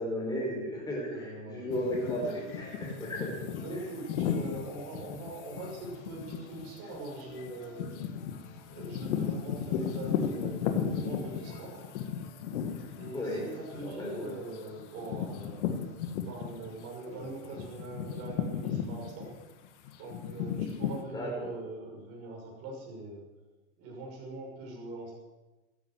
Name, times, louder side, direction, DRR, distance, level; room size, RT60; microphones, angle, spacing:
voice 1, 0.0-3.3 13.1-13.4 13.8-14.4 21.1-21.5, equal, 10° left, -2 dB, 5.1 m, -34 dB
voice 2, 1.1-2.0 3.6-8.0 8.7-11.9 13.0-19.3 20.0-23.2 23.8-25.1, right 2 dB, 35° right, -2 dB, 6.4 m, -42 dB
sound 1, 1.7-16.8 17.2-21.0, left 8 dB, 55° left, 1.9 m, -36 dB
14.0 x 11.0 x 8.0 m, 1.1 s
supercardioid pair, 155°, 42 cm